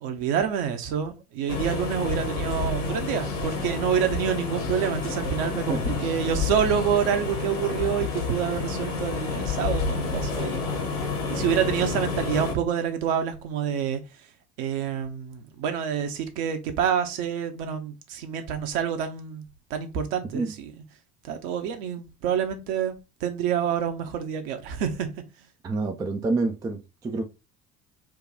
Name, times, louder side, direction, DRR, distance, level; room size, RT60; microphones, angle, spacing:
voice 1, 0.0-10.7 10.9-11.0 11.3-14.0 14.6-19.4 19.7-20.5 21.2-25.1, right 8 dB, 55° right, 0.9 m, -27 dB
sound 1, 1.5-12.5, left 3 dB, 70° left, 1.3 m, -30 dB
sound 2, 5.8-6.1 6.4-6.7 7.8-8.4 9.5-10.0, left 16 dB, 45° left, 0.5 m, -31 dB
voice 2, 25.6-27.2, right 3 dB, 10° right, 0.3 m, -27 dB
4.6 x 2.3 x 3.4 m
figure-of-eight pair, 65°, 46 cm